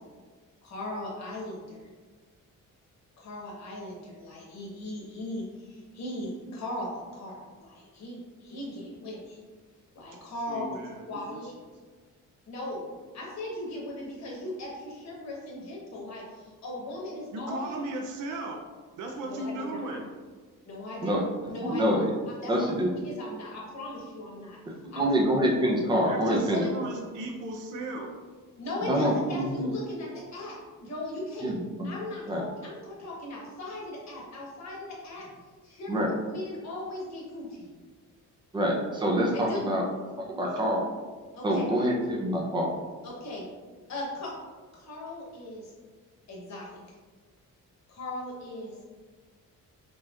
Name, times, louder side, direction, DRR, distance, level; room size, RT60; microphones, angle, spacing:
voice 1, 0.6-1.8 3.2-9.4 9.9-10.8 11.1-11.5 12.5-12.8 13.1-17.7 19.2-20.0 20.6-21.1 21.5-21.8 22.4-22.7 23.0-24.6 24.9-25.0 26.3-26.7 28.6-30.5 30.8-31.5 31.8-35.3 35.6-37.7 39.3-39.7 41.3-41.6 43.0-43.4 43.9-44.3 44.7-45.7 46.3-46.8 47.9-48.7, left 1 dB, 55° left, -4 dB, 1.2 m, -38 dB
voice 2, 10.5-11.4 17.3-18.6 19.0-20.1 26.0-28.1 40.4-40.6, right 1 dB, 65° right, 1 dB, 0.5 m, -36 dB
voice 3, 21.6-22.2 22.5-22.9 24.7-26.6 28.8-29.7 31.4-31.9 32.3-32.4 35.9-36.1 38.5-39.8 40.2-40.9 41.4-42.7, equal, 15° right, -2 dB, 0.5 m, -26 dB
5.3 x 2.9 x 2.4 m, 1.4 s
wide cardioid pair, 175°, 33 cm